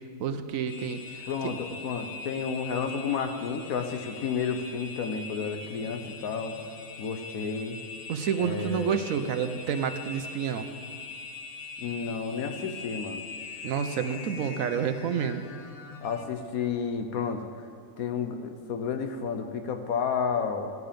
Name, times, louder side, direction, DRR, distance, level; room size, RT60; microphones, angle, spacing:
voice 1, 0.2-1.2 8.1-10.7 13.6-15.4, right 7 dB, 70° right, 9 dB, 1.0 m, -29 dB
sound 1, 0.7-16.2, left 4 dB, 35° left, 0.7 m, -42 dB
voice 2, 1.3-6.6 7.0-7.8 8.4-9.0 11.8-13.2 16.0-17.5 18.0-20.7, left 6 dB, 75° left, 7 dB, 1.2 m, -31 dB
14.0 x 9.4 x 5.1 m, 2.4 s
omnidirectional pair, 1.6 m